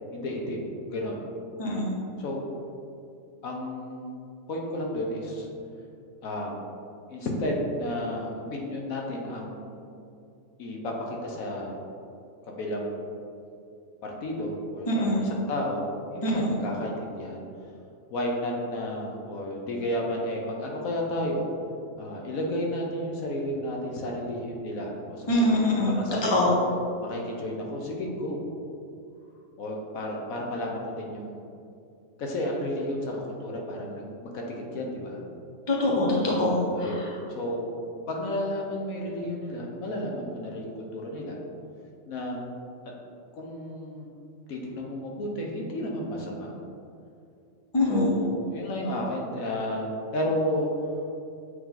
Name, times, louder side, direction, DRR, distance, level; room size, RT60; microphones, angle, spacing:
voice 1, 0.1-1.2 2.2-2.4 3.4-4.2 4.5-5.5 6.2-6.6 7.1-9.8 10.6-11.8 12.5-13.2 14.0-15.8 16.1-17.4 18.1-21.4 22.0-25.6 25.8-26.5 27.0-28.4 29.6-31.4 32.2-35.2 36.8-37.0 37.3-37.7 38.1-41.4 42.1-42.4 43.4-44.1 44.5-46.5 47.9-50.7, left 1 dB, 75° left, -1 dB, 1.3 m, -32 dB
voice 2, 1.6-1.9 14.9-15.3 16.2-16.3 25.3-26.0 26.3-26.5 35.7-36.9 47.7-48.1, left 1 dB, 20° left, -4 dB, 0.9 m, -23 dB
7.8 x 3.4 x 3.8 m, 2.5 s
omnidirectional pair, 1.5 m